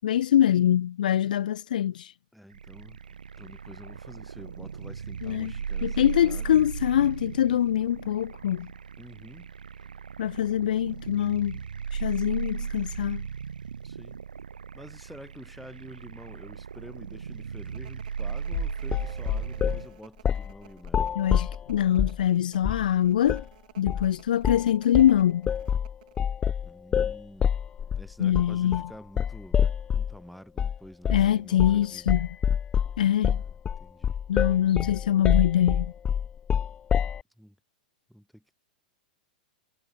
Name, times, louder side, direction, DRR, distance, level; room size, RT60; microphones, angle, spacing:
voice 1, 0.0-2.1 5.2-5.5 5.8-8.7 10.2-11.6 11.9-13.3 21.2-23.4 23.8-25.5 28.2-28.8 31.1-32.3 33.0-33.4 34.3-35.9, left 11 dB, 75° left, 0.4 m, -24 dB
voice 2, 2.3-3.0 3.4-6.7 9.0-9.5 9.8-9.9 13.8-14.2 14.7-21.1 26.6-27.6 28.0-29.6 29.9-32.1 33.3-33.4 33.8-34.6 37.4-37.6 38.1-38.6, equal, ahead, 2.0 m, -48 dB
sound 1, 2.5-19.9, right 6 dB, 90° right, 1.6 m, -37 dB
sound 2, 17.7-26.2, right 13 dB, 70° right, 2.6 m, -55 dB
sound 3, 18.5-19.8 20.2-20.5 20.8-22.2 22.6-22.9 23.3-23.5 23.9-24.1 24.4-24.7 24.9-30.2 30.6-30.8 31.0-31.3 31.6-31.8 32.1-37.2, left 8 dB, 20° left, 0.4 m, -27 dB
hypercardioid pair, 110°, 5 cm